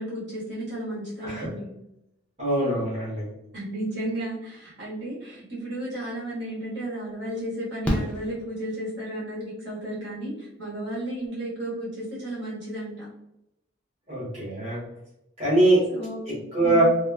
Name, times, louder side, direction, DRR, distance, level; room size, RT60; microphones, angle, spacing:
voice 1, 0.0-1.7 3.5-13.1 15.9-16.8, right 1 dB, 65° right, -8 dB, 1.4 m, -33 dB
voice 2, 2.4-3.3 14.1-14.8 15.4-15.9 16.3-16.8, right 1 dB, 35° right, -9 dB, 1.2 m, -23 dB
Fireworks, 6.2-6.3 7.8-9.2 10.9-11.0 11.2-11.3, equal, 5° left, 0.4 m, -30 dB
3.1 x 2.0 x 2.2 m, 0.85 s
head